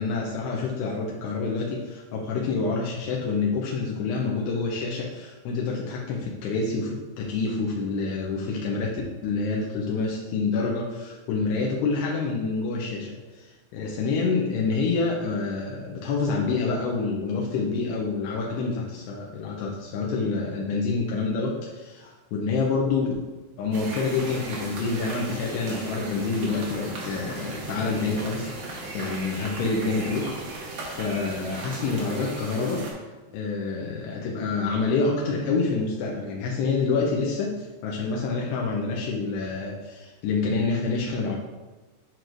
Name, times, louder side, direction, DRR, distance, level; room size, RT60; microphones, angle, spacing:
voice 1, 0.0-23.1 23.6-30.3 30.8-32.9 33.3-41.4, left 4 dB, 80° left, -2 dB, 2.7 m, -27 dB
sound 1, 23.7-32.9, right 2 dB, 90° right, 1.4 m, -36 dB
9.1 x 4.6 x 2.6 m, 1.2 s
omnidirectional pair, 4.9 m